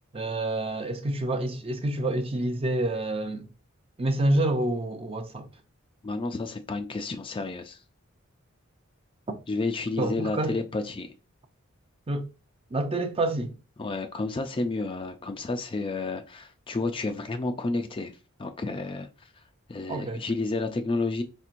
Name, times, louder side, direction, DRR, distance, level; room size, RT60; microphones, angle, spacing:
voice 1, 0.1-3.5 4.0-5.5 10.0-10.6 12.1-12.3 12.7-13.5 19.9-20.2, right 1 dB, 25° right, 0.5 m, -28 dB
voice 2, 6.0-7.8 9.5-11.1 13.8-19.1 19.7-21.2, left 3 dB, 25° left, 0.4 m, -31 dB
4.4 x 3.5 x 2.5 m
head